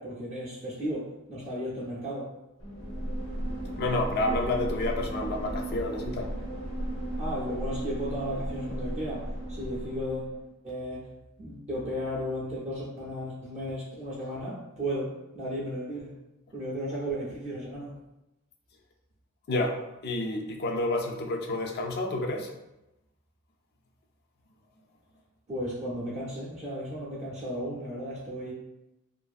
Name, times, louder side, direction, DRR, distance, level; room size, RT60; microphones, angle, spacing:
voice 1, 0.0-2.3 7.2-10.4 10.6-11.0 11.4-16.1 16.5-17.9 25.5-28.5, equal, 30° right, -5 dB, 0.5 m, -34 dB
sound 1, 2.6-10.4, right 1 dB, 75° left, 0.9 m, -35 dB
voice 2, 3.8-6.3 19.5-22.5, left 2 dB, 50° left, 3 dB, 0.4 m, -29 dB
2.5 x 2.4 x 2.3 m, 0.93 s
head